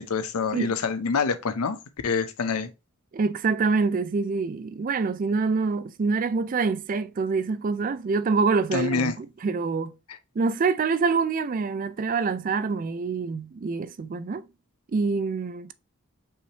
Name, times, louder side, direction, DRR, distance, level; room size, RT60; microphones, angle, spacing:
voice 1, 0.0-1.8 2.0-2.7 8.7-9.2, left 5 dB, 80° left, 0.6 m, -26 dB
voice 2, 3.1-9.9 10.4-14.4 14.9-15.7, right 4 dB, 35° right, 0.3 m, -26 dB
5.4 x 3.2 x 2.8 m
head